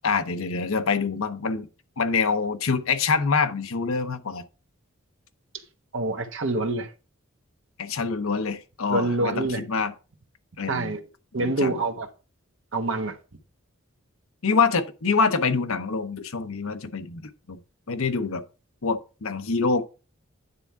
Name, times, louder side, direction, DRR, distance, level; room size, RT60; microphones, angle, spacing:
voice 1, 0.0-1.7 2.0-4.4 7.8-9.9 10.6-11.0 11.4-11.8 14.4-17.6 17.9-18.4 18.8-19.8, left 4 dB, 80° left, 0.8 m, -25 dB
voice 2, 5.9-6.9 8.9-9.6 10.7-11.0 11.3-12.1 12.7-13.2, right 2 dB, 65° right, 1.1 m, -26 dB
9.7 x 3.6 x 5.6 m
head